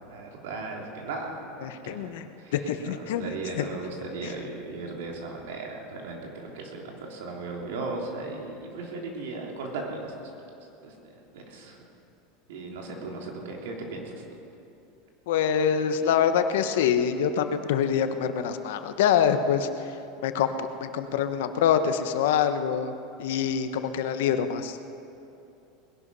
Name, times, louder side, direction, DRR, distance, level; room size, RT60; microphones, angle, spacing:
voice 1, 0.0-10.5 10.8-11.8 12.5-14.2, right 3 dB, 85° right, 0 dB, 3.3 m, -37 dB
voice 2, 1.6-2.3 2.5-3.3 3.6-3.7 4.2-4.3 15.3-19.9 20.2-22.9 23.2-24.8, left 8 dB, 80° left, 9 dB, 1.0 m, -25 dB
20.5 x 11.5 x 5.5 m, 2.8 s
supercardioid pair, 170°, 0 cm